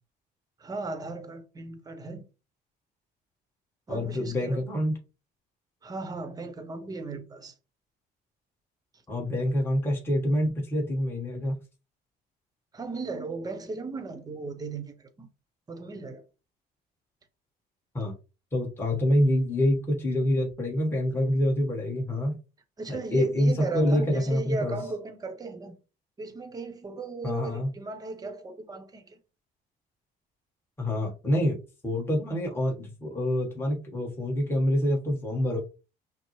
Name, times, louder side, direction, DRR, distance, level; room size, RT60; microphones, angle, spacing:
voice 1, 0.6-2.2 3.9-4.6 5.8-7.5 12.7-15.3 15.7-16.2 22.8-25.8 26.2-29.2, right 3 dB, 20° right, 0.8 m, -36 dB
voice 2, 3.9-5.0 9.1-11.5 17.9-18.1 18.5-22.4 22.9-24.7 27.2-27.7 30.8-31.6 31.8-35.6, left 1 dB, 15° left, 1.3 m, -26 dB
5.6 x 2.0 x 3.1 m
cardioid pair, 110°, 17 cm